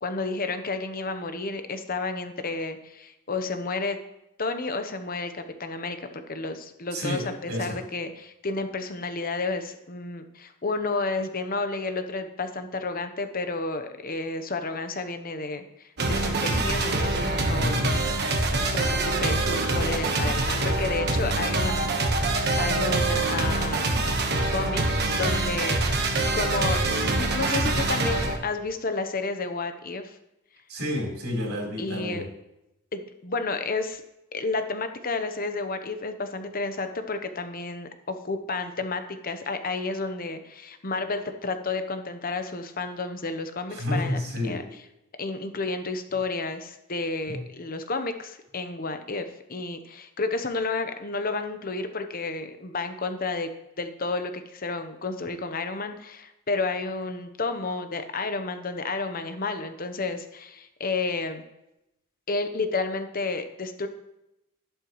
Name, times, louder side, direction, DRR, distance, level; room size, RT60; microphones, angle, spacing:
voice 1, 0.0-4.0 4.4-15.6 16.0-17.7 18.3-22.3 22.6-23.9 24.5-24.8 25.1-25.8 26.3-30.2 31.8-32.3 32.9-34.0 34.3-44.6 45.2-53.5 53.8-61.4 62.3-63.9, left 3 dB, 40° left, 8 dB, 0.9 m, -31 dB
voice 2, 6.9-7.8 17.4-17.9 30.7-32.3 43.7-44.6 47.3-47.4, left 1 dB, 80° right, -4 dB, 3.8 m, -30 dB
sound 1, 16.0-28.4, right 2 dB, 50° right, 1.3 m, -25 dB
11.5 x 11.0 x 3.1 m, 0.88 s
head